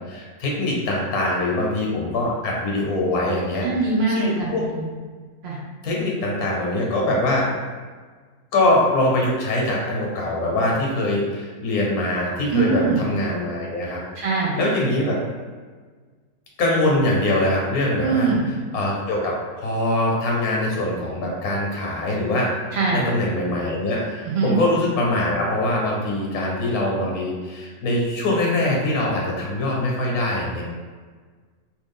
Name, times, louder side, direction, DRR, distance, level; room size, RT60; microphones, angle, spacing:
voice 1, 0.0-3.7 4.1-4.6 5.8-7.5 8.5-14.2 14.5-15.2 16.6-18.3 18.7-22.5 22.9-30.6, left 1 dB, 75° left, -2 dB, 1.3 m, -23 dB
voice 2, 3.6-4.8 5.4-5.6 12.5-13.0 14.2-14.6 18.0-18.5 22.7-23.1 24.2-24.6, right 4 dB, 60° right, -3 dB, 0.7 m, -22 dB
3.1 x 2.4 x 3.6 m, 1.5 s
omnidirectional pair, 1.6 m